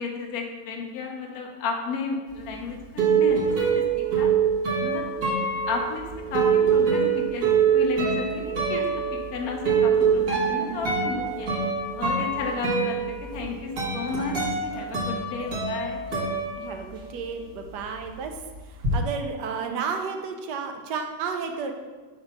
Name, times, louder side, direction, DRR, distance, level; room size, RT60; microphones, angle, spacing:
voice 1, 0.0-3.8 4.1-4.3 4.8-5.1 5.7-6.1 6.3-8.9 9.3-11.5 11.9-16.0, left 4 dB, 60° left, 1 dB, 1.2 m, -33 dB
sound 1, 2.4-17.2 17.5-18.9, right 6 dB, 50° right, 1.5 m, -25 dB
voice 2, 10.5-11.2 16.6-21.7, right 5 dB, 75° right, 5 dB, 1.2 m, -33 dB
5.9 x 3.3 x 5.3 m, 1.3 s
omnidirectional pair, 1.9 m